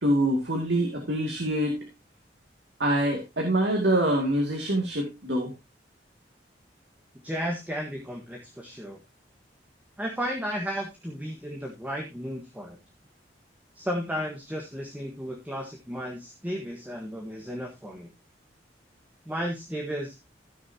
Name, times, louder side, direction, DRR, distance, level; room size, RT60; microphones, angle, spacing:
voice 1, 0.0-1.9 2.8-5.5, right 1 dB, 75° right, 1 dB, 2.6 m, -25 dB
voice 2, 7.2-9.0 10.0-12.8 13.7-18.1 19.2-20.2, equal, 10° right, 0 dB, 1.6 m, -34 dB
16.0 x 6.5 x 2.9 m, 0.23 s
head